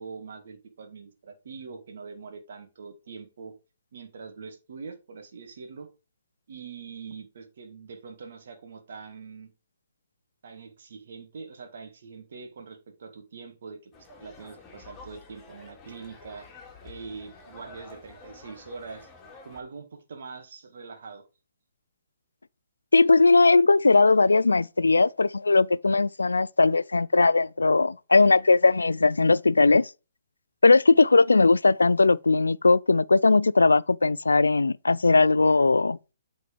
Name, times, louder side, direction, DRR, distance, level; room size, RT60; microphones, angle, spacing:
voice 1, 0.0-3.5 3.9-5.9 6.5-9.5 10.4-16.5 16.8-19.1 19.5-21.2, right 5 dB, 60° right, 1.7 m, -43 dB
sound 1, 13.9-19.6, left 3 dB, 20° left, 2.6 m, -49 dB
voice 2, 22.9-29.9 30.6-36.0, left 3 dB, 85° left, 0.3 m, -19 dB
8.3 x 4.3 x 5.0 m
figure-of-eight pair, 130°, 0 cm